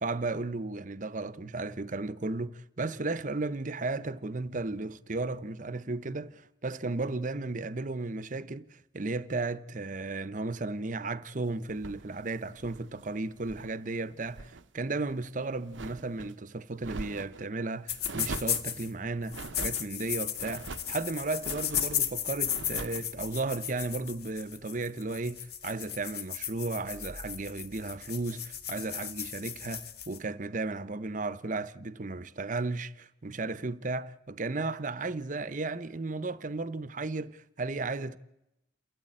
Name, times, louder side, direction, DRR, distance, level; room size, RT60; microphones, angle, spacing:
voice 1, 0.0-38.2, right 3 dB, 45° right, 0.8 m, -34 dB
sound 1, 11.7-13.8 14.1-14.7 15.0-16.3 16.8-17.5 18.0-18.7 19.3-19.9 20.4-21.0 21.4-22.0 22.4-23.1, right 3 dB, 90° right, 0.7 m, -42 dB
sound 2, 17.9-18.9 19.3-30.2, left 9 dB, 55° left, 1.8 m, -35 dB
29.0 x 13.5 x 8.8 m
head